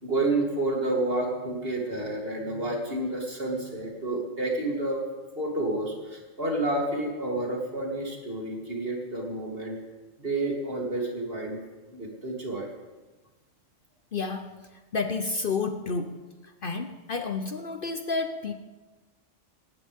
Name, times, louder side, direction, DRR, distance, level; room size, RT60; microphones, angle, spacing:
voice 1, 0.0-5.0 5.4-9.8 10.2-11.6 11.9-12.7, right 2 dB, 50° right, -2 dB, 3.4 m, -29 dB
voice 2, 14.1-14.6 14.9-16.2 16.6-18.5, left 4 dB, 50° left, 7 dB, 0.9 m, -30 dB
19.0 x 18.0 x 3.6 m, 1.2 s
omnidirectional pair, 1.3 m